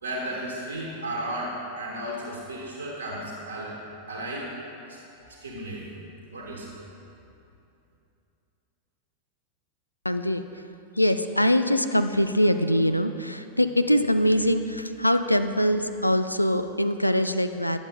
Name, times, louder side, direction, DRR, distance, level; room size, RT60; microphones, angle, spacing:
voice 1, 0.0-3.8 4.1-4.5 4.9-5.0 5.2-6.1 6.3-6.7, right 1 dB, 75° right, -3 dB, 1.1 m, -34 dB
voice 2, 10.0-10.4 11.0-17.8, equal, 85° left, 9 dB, 0.3 m, -23 dB
10.0 x 7.0 x 3.7 m, 2.7 s
figure-of-eight pair, 90°, 0 cm